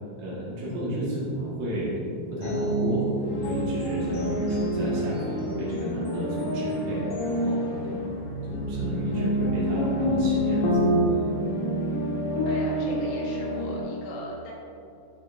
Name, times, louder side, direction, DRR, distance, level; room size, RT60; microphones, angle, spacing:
voice 1, 0.2-8.2 8.5-10.8, right 1 dB, 75° right, -9 dB, 4.6 m, -33 dB
sound 1, 2.4-13.8, equal, 65° left, 3.5 m, -27 dB
voice 2, 12.4-14.5, left 1 dB, 80° left, -3 dB, 4.3 m, -39 dB
15.0 x 7.0 x 2.9 m, 2.7 s
omnidirectional pair, 5.7 m